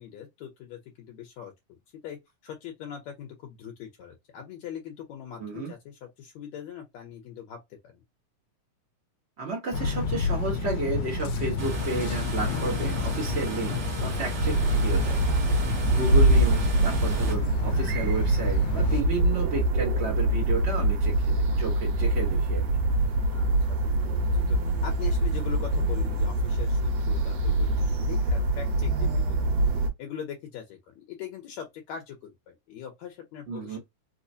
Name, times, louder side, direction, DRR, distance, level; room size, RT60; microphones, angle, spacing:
voice 1, 0.0-1.5 2.0-7.6 7.9-8.0 23.3-23.9 24.5-29.6 30.0-33.8, left 8 dB, 70° left, 2.0 m, -41 dB
voice 2, 5.4-5.7 9.4-15.2 15.9-22.7 33.5-33.8, right 4 dB, 85° right, 0.5 m, -32 dB
sound 1, 9.7-19.0, left 4 dB, 90° left, 2.0 m, -30 dB
sound 2, 11.6-17.3, right 4 dB, 50° right, 1.3 m, -36 dB
sound 3, 14.4-29.9, right 1 dB, 65° right, 1.9 m, -24 dB
4.8 x 2.1 x 2.6 m
omnidirectional pair, 3.4 m